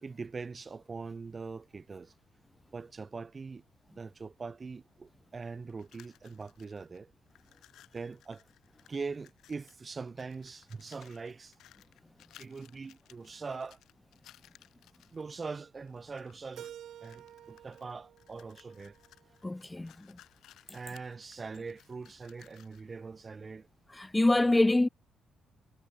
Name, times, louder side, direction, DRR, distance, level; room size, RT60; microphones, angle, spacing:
voice 1, 0.0-2.1 2.7-3.6 3.9-7.1 7.9-8.4 8.9-11.5 12.4-13.8 15.1-16.7 17.0-18.9 20.7-23.7, right 4 dB, 30° right, 4.2 m, -42 dB
sound 1, 5.7-7.0 7.3-9.9 10.2-15.3 15.9-16.7 17.0-22.9, left 13 dB, 80° left, 4.7 m, -60 dB
Keyboard (musical), 16.6-19.5, right 11 dB, 75° right, 3.9 m, -51 dB
voice 2, 19.4-19.9 24.0-24.9, left 2 dB, 15° left, 0.3 m, -25 dB
cardioid pair, 90°, 0 cm